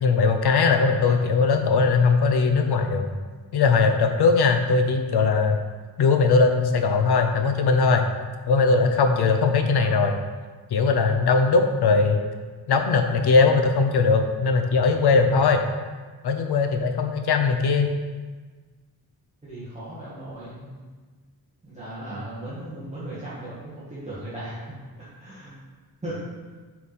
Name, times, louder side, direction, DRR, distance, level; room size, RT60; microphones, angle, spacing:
voice 1, 0.0-3.1 3.5-5.6 6.0-8.0 8.5-10.2 10.7-12.2 12.7-15.7 16.2-17.9, left 4 dB, 90° left, 5 dB, 0.7 m, -20 dB
voice 2, 9.6-10.0 19.4-20.9 21.6-25.6 26.0-26.2, right 1 dB, 20° right, -11 dB, 1.5 m, -37 dB
5.4 x 4.7 x 4.1 m, 1.4 s
wide cardioid pair, 150°, 38 cm